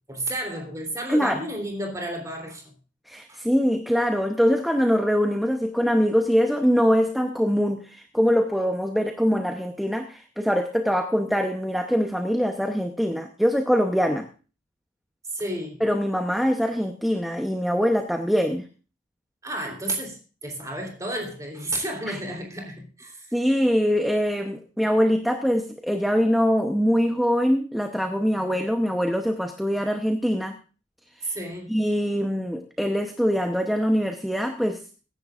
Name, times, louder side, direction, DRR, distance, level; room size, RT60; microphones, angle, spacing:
voice 1, 0.1-2.6 3.3-3.4 15.3-15.8 19.4-23.3 31.2-31.7, right 1 dB, 15° right, 2 dB, 3.3 m, -32 dB
voice 2, 1.1-1.4 3.1-14.3 15.8-18.6 22.1-22.2 23.3-30.6 31.2-31.4 31.7-34.8, equal, ahead, 4 dB, 0.8 m, -23 dB
22.0 x 10.5 x 2.5 m, 0.36 s
head